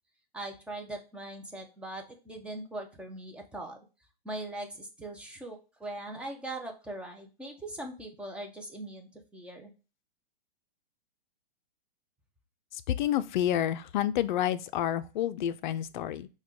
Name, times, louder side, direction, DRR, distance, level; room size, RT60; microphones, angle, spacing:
voice 1, 0.3-3.8 4.2-9.7, right 1 dB, 5° right, 0.5 m, -41 dB
voice 2, 12.7-16.3, left 11 dB, 55° left, 0.5 m, -29 dB
5.9 x 2.3 x 3.8 m
hypercardioid pair, 140°, 30 cm